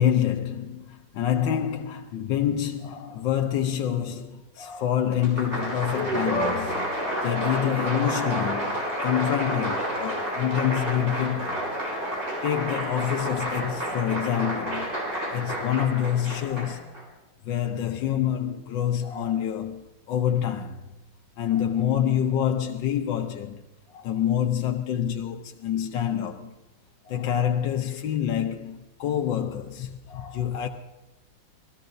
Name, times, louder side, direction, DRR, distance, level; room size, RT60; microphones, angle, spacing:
voice 1, 0.0-11.6 12.1-14.9 15.3-16.9 17.4-20.8 21.4-23.6 23.9-26.5 27.1-30.7, left 10 dB, 85° left, 1.5 m, -27 dB
Applause, 5.1-17.0, equal, 40° right, 5.9 m, -30 dB
28.0 x 19.5 x 2.6 m
omnidirectional pair, 2.0 m